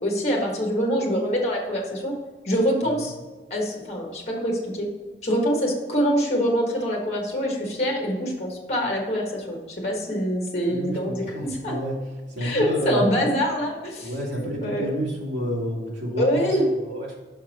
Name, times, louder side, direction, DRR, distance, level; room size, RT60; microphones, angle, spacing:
voice 1, 0.0-2.2 2.4-3.1 3.5-4.9 5.2-11.8 12.4-14.9 16.2-16.6, equal, 35° left, -1 dB, 1.4 m, -25 dB
voice 2, 10.7-12.0 12.3-13.1 14.0-17.2, equal, 80° right, -3 dB, 2.2 m, -29 dB
6.0 x 5.2 x 4.1 m, 1.3 s
head